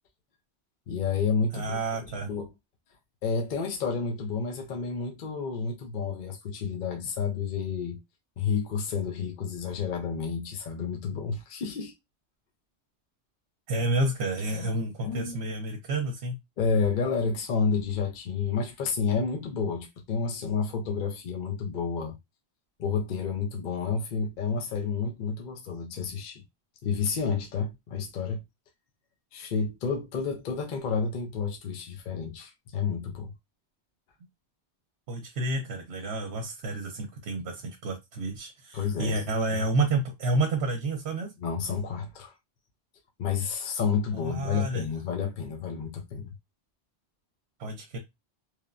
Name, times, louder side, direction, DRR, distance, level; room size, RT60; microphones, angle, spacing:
voice 1, 0.9-2.5 3.2-8.0 8.4-11.9 14.5-14.7 15.0-15.5 16.6-22.2 22.8-26.4 26.8-28.4 29.3-33.3 38.7-39.2 39.5-39.6 41.4-42.3 43.2-46.3, left 5 dB, 55° left, 0.6 m, -30 dB
voice 2, 1.5-2.3 13.7-16.4 35.1-41.3 44.1-44.8 47.6-48.0, right 2 dB, 70° right, 0.9 m, -30 dB
3.1 x 2.1 x 2.4 m
omnidirectional pair, 1.2 m